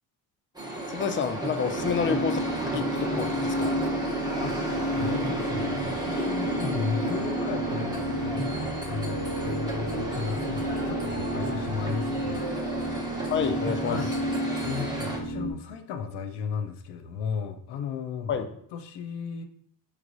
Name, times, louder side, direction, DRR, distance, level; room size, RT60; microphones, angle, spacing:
sound 1, 0.5-15.2, right 2 dB, 10° right, 0.8 m, -33 dB
voice 1, 0.9-3.7 13.3-14.0 18.3-18.5, left 7 dB, 30° left, 8 dB, 0.4 m, -29 dB
sound 2, 1.8-15.5, equal, 55° right, 1.0 m, -32 dB
voice 2, 4.1-4.7 4.9-12.5 13.9-14.1 14.6-18.4 18.7-19.4, left 6 dB, 85° left, 6 dB, 0.6 m, -35 dB
4.4 x 3.2 x 2.5 m, 0.67 s
cardioid pair, 100°, 40 cm